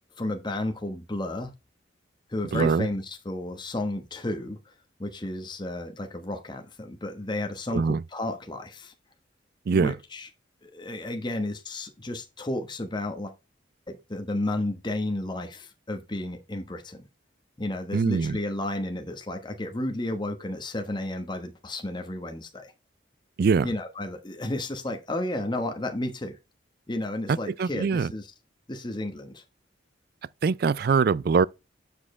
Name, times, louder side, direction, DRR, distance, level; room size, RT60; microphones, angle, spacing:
voice 1, 0.2-1.5 2.3-4.7 5.0-8.9 9.7-10.3 10.6-13.3 13.9-17.1 17.6-22.7 23.6-26.4 26.9-28.3 28.7-29.4, left 1 dB, 25° left, 1.0 m, -32 dB
voice 2, 2.5-2.9 7.7-8.0 9.7-9.9 17.9-18.4 23.4-23.7 27.6-28.1 30.4-31.5, right 5 dB, 50° right, 0.3 m, -22 dB
7.4 x 6.5 x 3.2 m
head